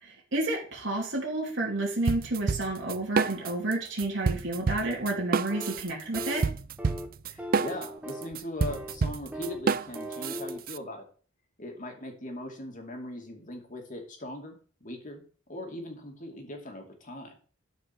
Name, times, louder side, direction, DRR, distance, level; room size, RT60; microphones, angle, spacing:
voice 1, 0.0-6.4, right 2 dB, 70° right, -3 dB, 3.1 m, -30 dB
sound 1, 2.1-3.7 4.0-10.8, right 5 dB, 50° right, 0.4 m, -29 dB
sound 2, 5.5-5.8 6.1-6.5 6.8-7.1 7.4-8.4 8.7-9.0 9.3-9.6 9.9-10.6, equal, 10° right, 1.2 m, -38 dB
voice 2, 7.3-11.1 11.6-15.2 15.5-17.4, left 1 dB, 40° left, 3 dB, 2.7 m, -40 dB
12.5 x 5.3 x 6.1 m, 0.42 s
head